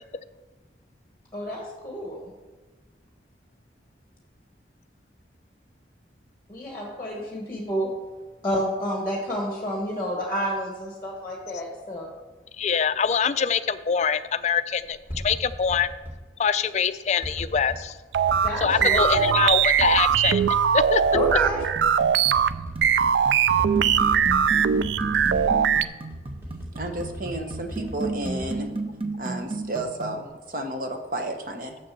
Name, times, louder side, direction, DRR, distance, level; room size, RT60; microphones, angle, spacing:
voice 1, 1.3-2.3 6.5-7.9 8.4-12.1 18.4-19.4 21.1-21.7, equal, 15° left, -1 dB, 1.5 m, -29 dB
voice 2, 12.6-15.9 16.4-18.0 18.6-20.4 20.7-21.0, left 6 dB, 40° left, 13 dB, 0.3 m, -24 dB
sound 1, 14.8-16.2 17.2-17.8 18.3-19.3 19.8-20.6 21.0-21.7 22.0-22.1 22.3-23.2 23.6-24.5 24.8-25.6 26.1-29.2 29.6-30.0, equal, 10° right, 2.1 m, -37 dB
sound 2, 18.1-25.8, right 8 dB, 75° right, 0.3 m, -21 dB
sound 3, 21.8-30.2, right 3 dB, 30° right, 0.6 m, -34 dB
voice 3, 26.7-28.7 29.2-31.8, right 1 dB, 50° right, 4 dB, 1.0 m, -32 dB
6.8 x 6.7 x 7.0 m, 1.2 s
head